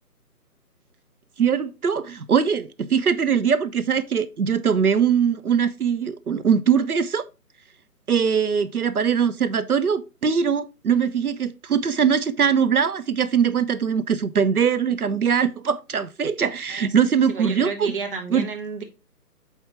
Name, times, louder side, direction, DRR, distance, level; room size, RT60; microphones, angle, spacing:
voice 1, 1.4-7.2 8.1-17.9 18.3-18.5, right 7 dB, 65° right, 0.7 m, -21 dB
voice 2, 17.3-18.8, right 5 dB, 35° right, 1.4 m, -31 dB
8.1 x 4.5 x 3.3 m
figure-of-eight pair, 145°, 47 cm